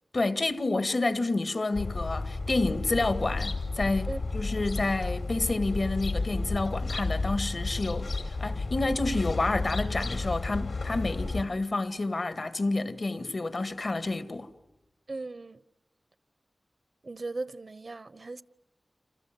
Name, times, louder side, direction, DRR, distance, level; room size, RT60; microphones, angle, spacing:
voice 1, 0.1-14.5, left 2 dB, 55° left, 1.7 m, -29 dB
sound 1, 1.7-11.4, left 3 dB, 75° left, 3.8 m, -32 dB
voice 2, 15.1-15.6 17.0-18.4, right 3 dB, 55° right, 1.0 m, -37 dB
28.0 x 27.0 x 7.8 m
wide cardioid pair, 65°, 0 cm